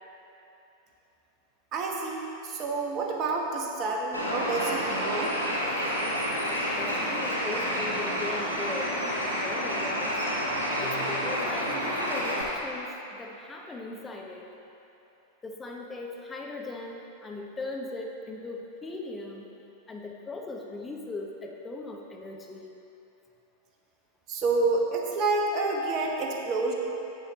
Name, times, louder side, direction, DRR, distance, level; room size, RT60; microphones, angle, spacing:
voice 1, 1.7-5.4 24.3-26.7, right 3 dB, 35° right, 0 dB, 1.1 m, -28 dB
Bird, 4.1-12.4, equal, 85° right, 1.7 m, -29 dB
voice 2, 6.7-8.9 9.2-10.2 10.8-14.5 15.4-19.5 19.9-22.8, left 3 dB, 15° left, 0 dB, 0.8 m, -39 dB
7.6 x 7.5 x 4.0 m, 2.9 s
figure-of-eight pair, 90°, 0 cm